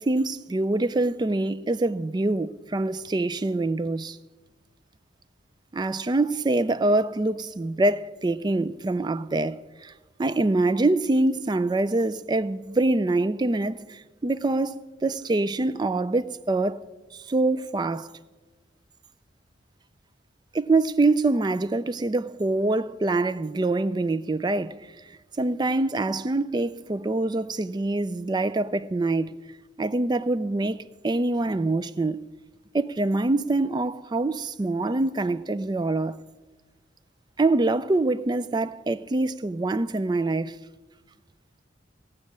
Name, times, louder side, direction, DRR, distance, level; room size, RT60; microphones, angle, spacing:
voice 1, 0.0-4.2 5.7-9.9 10.2-16.8 17.1-18.1 20.5-24.8 25.4-29.3 29.8-32.2 32.7-36.2 37.4-40.6, right 2 dB, 20° right, 0.3 m, -25 dB
16.5 x 6.2 x 8.6 m
head